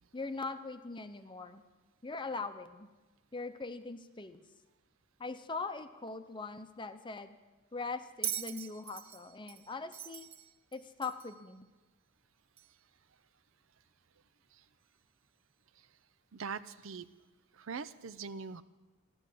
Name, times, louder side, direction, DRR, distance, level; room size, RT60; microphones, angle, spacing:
voice 1, 0.1-1.6 2.0-2.9 3.3-4.4 5.2-7.4 7.7-10.3 10.7-11.7, left 3 dB, 20° left, 10 dB, 0.7 m, -41 dB
Bell, 8.2-11.4 12.6-12.7, right 10 dB, 30° right, 0.4 m, -41 dB
voice 2, 16.3-17.1 17.6-18.6, right 5 dB, 70° right, 14 dB, 0.6 m, -41 dB
14.0 x 12.5 x 7.6 m, 1.2 s
head